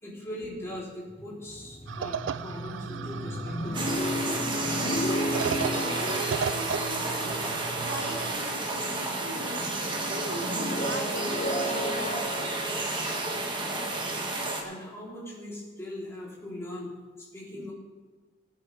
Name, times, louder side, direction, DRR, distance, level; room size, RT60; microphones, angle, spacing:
voice 1, 0.0-4.0 14.6-16.9 17.2-17.7, left 1 dB, 15° left, -7 dB, 3.8 m, -40 dB
sound 1, 1.1-8.8 9.2-14.3, equal, 35° left, 0.9 m, -34 dB
sound 2, 1.9-8.3, right 6 dB, 80° right, 0.3 m, -35 dB
sound 3, 3.7-14.6, right 2 dB, 25° right, 1.5 m, -31 dB
voice 2, 5.7-12.6 12.9-13.2 13.4-13.5 17.5-17.7, right 1 dB, 60° right, 5 dB, 1.3 m, -41 dB
17.5 x 10.0 x 3.5 m, 1.4 s
head